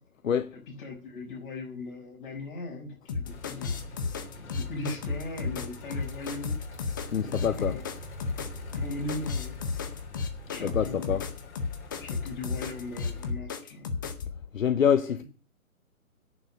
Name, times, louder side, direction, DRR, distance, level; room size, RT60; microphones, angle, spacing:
voice 1, 0.2-0.6 7.1-7.8 10.6-11.3 14.5-15.2, left 8 dB, 65° left, 1.0 m, -26 dB
voice 2, 0.8-3.7 4.1-6.6 7.1-7.9 8.7-9.6 10.5-11.2 12.0-13.9 15.0-15.2, left 2 dB, 35° left, 6.3 m, -39 dB
sound 1, 3.1-14.2, left 4 dB, 15° left, 0.7 m, -33 dB
sound 2, 3.2-13.3, left 3 dB, 50° left, 3.7 m, -44 dB
10.5 x 7.1 x 8.8 m
hypercardioid pair, 155°, 42 cm